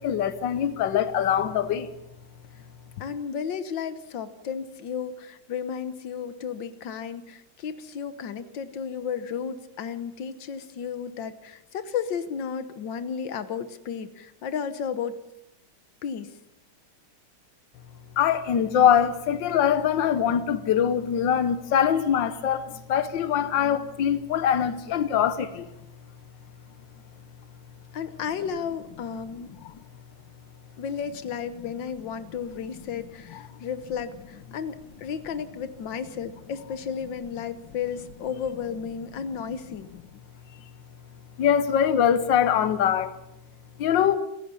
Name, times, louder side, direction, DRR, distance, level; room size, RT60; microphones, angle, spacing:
voice 1, 0.0-1.9 18.2-25.7 29.6-29.7 41.4-43.1 43.8-44.2, left 9 dB, 85° left, 1.0 m, -23 dB
voice 2, 3.0-15.2 16.0-16.3 27.9-29.5 30.8-39.9, left 7 dB, 60° left, 1.2 m, -33 dB
27.0 x 15.5 x 7.0 m
omnidirectional pair, 3.4 m